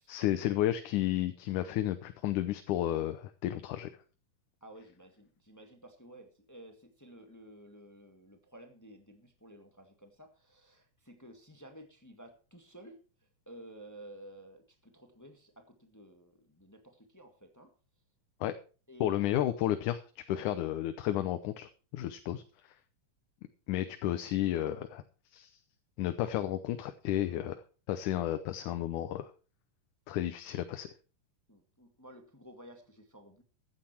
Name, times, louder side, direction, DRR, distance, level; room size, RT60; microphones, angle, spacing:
voice 1, 0.0-3.9 18.4-18.6 19.0-22.7 23.7-25.0 25.3-25.6 26.0-27.6 27.9-29.3 30.1-30.9, left 13 dB, 80° left, 10 dB, 2.3 m, -32 dB
voice 2, 4.6-13.0 13.4-17.7 18.9-19.3 31.5-33.4, right 1 dB, 10° left, 5 dB, 0.9 m, -53 dB
14.5 x 9.9 x 4.4 m, 0.35 s
omnidirectional pair, 3.7 m